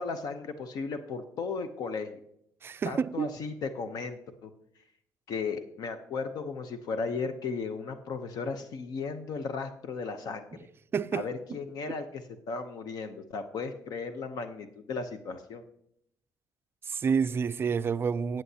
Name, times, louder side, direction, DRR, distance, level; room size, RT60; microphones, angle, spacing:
voice 1, 0.0-2.2 2.8-4.5 5.3-10.6 11.1-15.6, left 4 dB, 65° left, 0.8 m, -35 dB
voice 2, 2.6-3.4 10.9-11.2 16.8-18.4, right 6 dB, 35° right, 0.3 m, -29 dB
14.0 x 8.9 x 2.8 m
cardioid pair, 125°, 7 cm